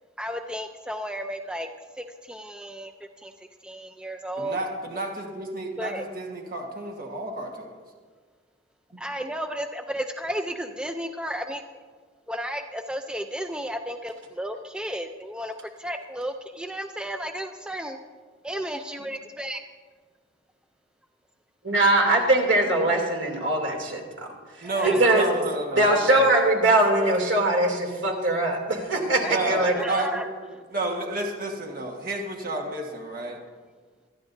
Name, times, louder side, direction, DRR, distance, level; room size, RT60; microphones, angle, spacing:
voice 1, 0.2-1.7 2.0-3.3 3.6-4.6 5.8-6.0 9.0-11.6 12.3-18.0 18.4-19.6 24.6-25.0 29.2-29.4 29.7-30.3, equal, 5° right, 5 dB, 0.5 m, -33 dB
voice 2, 4.4-7.7 8.9-9.0 24.6-26.3 29.2-30.2 30.7-33.4, right 2 dB, 50° right, 1 dB, 1.4 m, -31 dB
voice 3, 21.6-23.8 24.6-25.3 25.8-29.7, right 2 dB, 75° right, 1 dB, 2.7 m, -21 dB
26.5 x 10.5 x 2.6 m, 1.5 s
head